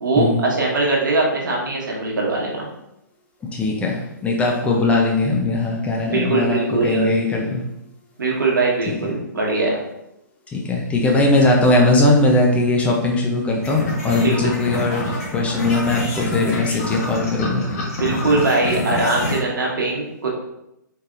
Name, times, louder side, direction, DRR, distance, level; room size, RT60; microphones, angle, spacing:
voice 1, 0.0-2.7 4.6-4.8 6.1-7.1 8.2-9.8 14.2-14.5 18.0-20.3, right 3 dB, 75° right, -3 dB, 1.3 m, -21 dB
voice 2, 3.5-7.6 8.9-9.1 10.5-15.1 15.3-17.7, left 2 dB, 10° left, -1 dB, 0.5 m, -19 dB
sound 1, 13.6-19.4, left 2 dB, 45° left, 1.2 m, -26 dB
4.2 x 3.3 x 2.5 m, 0.85 s
hypercardioid pair, 135°, 11 cm